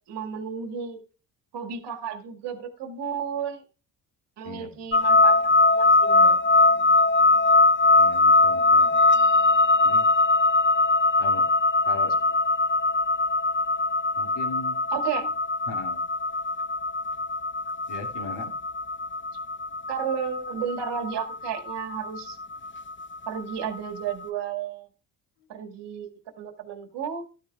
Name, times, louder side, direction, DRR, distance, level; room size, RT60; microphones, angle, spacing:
voice 1, 0.1-1.0 1.5-3.6 4.4-6.4 6.7-6.8 14.9-15.3 19.9-22.4 23.3-24.9 25.5-26.1 26.4-27.2, right 7 dB, 65° right, 4 dB, 2.0 m, -33 dB
sound 1, 4.9-24.0, left 3 dB, 25° left, 0.8 m, -21 dB
voice 2, 8.0-9.0 9.8-10.1 11.2-11.5 11.8-12.2 14.2-14.8 15.7-16.1 17.9-18.5, left 4 dB, 65° left, 2 dB, 2.5 m, -38 dB
13.5 x 12.0 x 2.3 m, 0.34 s
hypercardioid pair, 50°, 44 cm